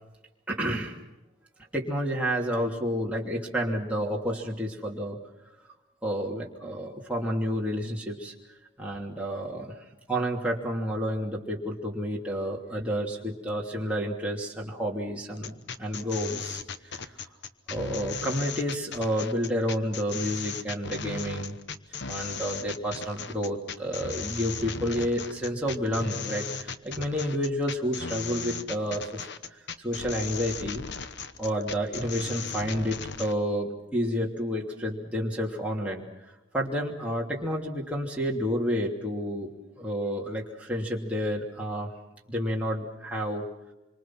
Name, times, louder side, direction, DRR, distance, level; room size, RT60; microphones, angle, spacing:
voice 1, 0.5-1.0 1.7-5.2 6.0-8.3 8.8-9.7 10.1-15.5 15.8-17.1 17.7-21.6 22.1-30.8 31.4-36.1 36.5-39.5 39.8-41.9 42.3-43.4, equal, 5° right, -3 dB, 2.9 m, -30 dB
sound 1, 15.4-33.3, left 5 dB, 60° left, 1.0 m, -37 dB
26.5 x 25.0 x 6.0 m, 0.98 s
head